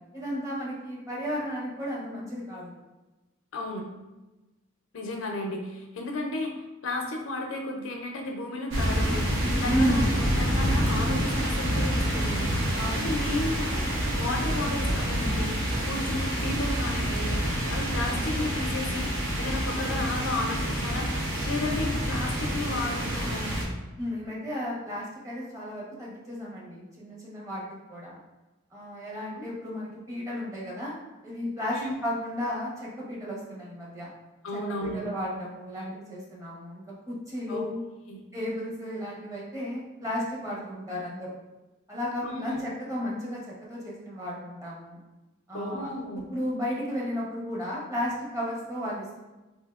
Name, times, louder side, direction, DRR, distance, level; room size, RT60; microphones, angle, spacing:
voice 1, 0.1-2.7 9.6-10.1 12.8-13.1 24.0-28.2 28.7-30.9 31.2-34.1 34.5-37.8 38.3-41.3 41.9-43.4 43.7-45.0 45.5-45.9 46.3-49.2, equal, 15° right, -6 dB, 0.8 m, -33 dB
voice 2, 3.5-3.9 4.9-12.5 12.9-15.6 15.8-17.4 17.7-19.1 19.4-23.5 29.3-29.5 31.7-31.9 34.4-35.1 37.5-37.7 38.1-38.2 42.2-42.6 45.5-46.3, left 2 dB, 75° left, 1 dB, 0.5 m, -33 dB
sound 1, 8.7-23.6, equal, 65° right, 0.8 m, -27 dB
3.3 x 2.7 x 2.3 m, 1.1 s
head